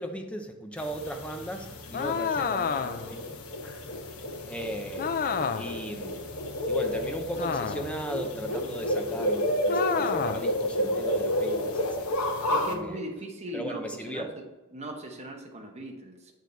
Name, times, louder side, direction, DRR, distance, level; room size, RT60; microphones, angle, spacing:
voice 1, 0.0-3.3 3.9-4.1 4.4-5.3 5.5-6.3 6.7-13.0 13.5-14.3, equal, 5° left, 4 dB, 0.7 m, -37 dB
sound 1, 0.8-12.8, left 1 dB, 65° left, 1.2 m, -31 dB
sound 2, 1.9-3.2 5.0-5.8 7.4-8.0 9.7-10.5, left 6 dB, 40° left, 0.4 m, -29 dB
voice 2, 12.5-14.4 14.7-16.4, right 1 dB, 30° right, 1 dB, 1.1 m, -39 dB
8.0 x 6.5 x 4.0 m, 1.2 s
head